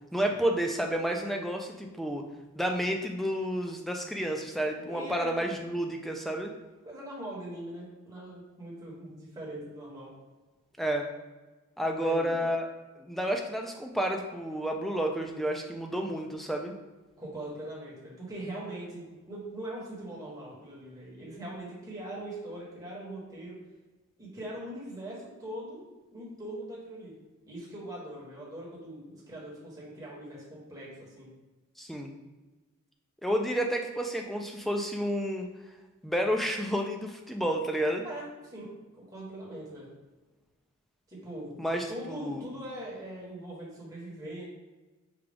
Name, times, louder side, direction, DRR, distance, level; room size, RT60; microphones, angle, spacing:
voice 1, 0.1-2.2 2.6-6.5 10.8-11.1 11.8-12.7 13.0-16.7 31.8-32.1 33.2-35.5 36.0-38.0 41.6-42.5, equal, ahead, 2 dB, 0.3 m, -30 dB
voice 2, 4.9-5.4 6.8-10.1 12.0-12.4 17.2-23.5 24.2-25.8 26.1-27.1 27.5-30.9 31.2-31.3 38.0-38.7 39.1-39.9 41.1-41.6 41.9-44.5, right 1 dB, 15° right, -6 dB, 1.2 m, -41 dB
5.1 x 2.3 x 3.4 m, 1.2 s
head